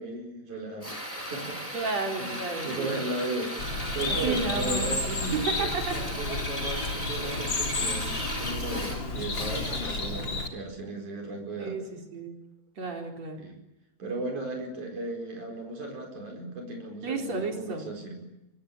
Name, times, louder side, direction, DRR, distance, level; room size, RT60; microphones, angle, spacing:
voice 1, 0.0-1.6 1.9-11.8 13.4-13.6 14.0-18.3, right 2 dB, 90° right, 2 dB, 6.0 m, -36 dB
Drill, 0.8-10.1, equal, 10° left, 5.8 m, -36 dB
voice 2, 1.7-3.0 4.1-4.9 5.6-5.9 11.6-12.4 12.8-13.4 17.0-17.9, right 4 dB, 60° right, 2 dB, 5.4 m, -33 dB
Bird, 3.6-10.5, left 3 dB, 40° left, 3.9 m, -32 dB
25.0 x 23.5 x 8.7 m, 0.92 s
omnidirectional pair, 3.3 m